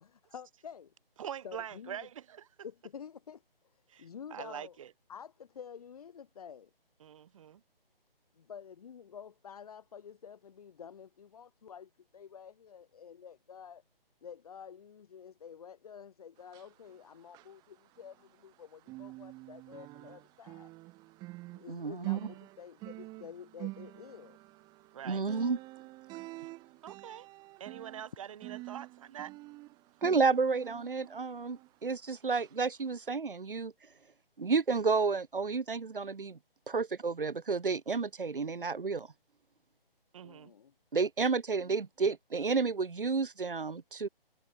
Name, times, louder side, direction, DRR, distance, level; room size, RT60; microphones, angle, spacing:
voice 1, 0.0-0.9 1.4-2.0 2.6-3.4 4.0-4.8 5.1-6.7 8.4-13.8 14.2-20.7 21.5-24.4 40.2-40.7, left 7 dB, 40° left, 2.6 m, -49 dB
voice 2, 1.2-2.5 3.9-4.9 7.0-7.6 24.9-25.2 26.8-27.3 27.6-29.3 40.1-40.5, right 9 dB, 35° right, 7.0 m, -44 dB
sound 1, 16.4-18.5 18.8-31.9 32.3-32.5 33.0-33.1, right 20 dB, 15° right, 3.8 m, -47 dB
voice 3, 21.7-22.2 25.0-25.6 30.0-33.7 34.4-36.4 36.7-39.1 40.9-44.1, right 4 dB, 60° right, 2.2 m, -31 dB
figure-of-eight pair, 150°, 30 cm